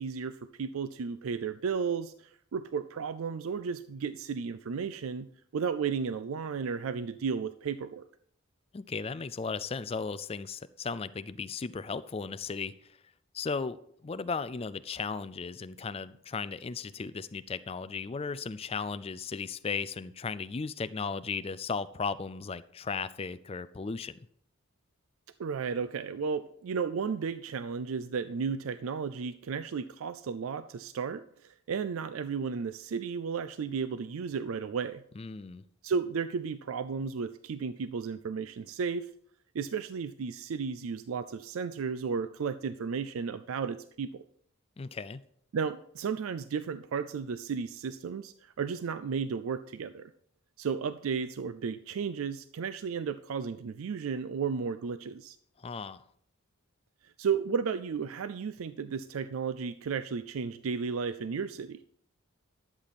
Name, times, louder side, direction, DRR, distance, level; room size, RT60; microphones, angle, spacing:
voice 1, 0.0-8.1 25.4-35.0 35.8-39.1 39.5-44.3 45.5-50.1 50.6-55.4 57.0-61.8, right 6 dB, 70° right, 13 dB, 0.4 m, -34 dB
voice 2, 8.7-13.0 13.3-24.3 35.2-35.6 44.8-45.2 55.6-56.0, left 5 dB, 25° left, 14 dB, 0.4 m, -36 dB
11.5 x 7.5 x 4.2 m, 0.67 s
head